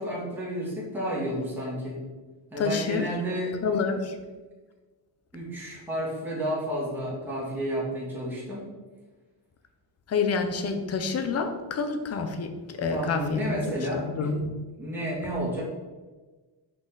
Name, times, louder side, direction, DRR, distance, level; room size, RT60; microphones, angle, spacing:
voice 1, 0.0-2.0 2.5-3.8 5.3-8.7 12.9-14.3 14.8-15.7, equal, 5° right, -7 dB, 2.0 m, -31 dB
voice 2, 2.6-3.1 3.6-4.2 10.1-13.6 14.0-14.5, left 4 dB, 30° left, 7 dB, 0.7 m, -28 dB
5.4 x 5.2 x 3.9 m, 1.3 s
cardioid pair, 135°, 47 cm